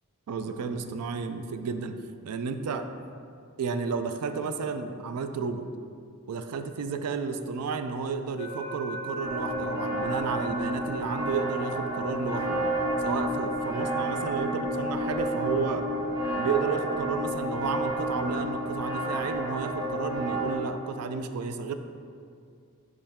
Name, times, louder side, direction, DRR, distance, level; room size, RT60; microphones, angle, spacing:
voice 1, 0.3-2.0 2.2-2.9 3.6-5.7 6.3-12.6 13.0-15.9 16.4-21.7, right 5 dB, 85° right, 8 dB, 0.4 m, -32 dB
sound 1, 8.4-16.4, equal, 30° left, 0.7 m, -42 dB
sound 2, 9.2-20.6, right 1 dB, 25° right, 1.3 m, -30 dB
8.5 x 3.2 x 3.5 m, 2.3 s
head